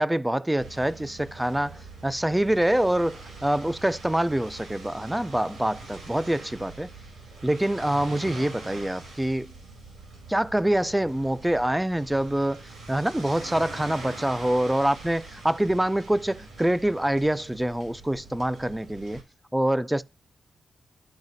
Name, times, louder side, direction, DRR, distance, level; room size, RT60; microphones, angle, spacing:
voice 1, 0.0-6.9 7.4-9.5 10.3-19.2 19.5-20.0, right 1 dB, 5° right, 0.4 m, -25 dB
sound 1, 0.6-19.2, right 3 dB, 85° right, 4.6 m, -43 dB
12.0 x 4.8 x 2.6 m
cardioid pair, 105°, 0 cm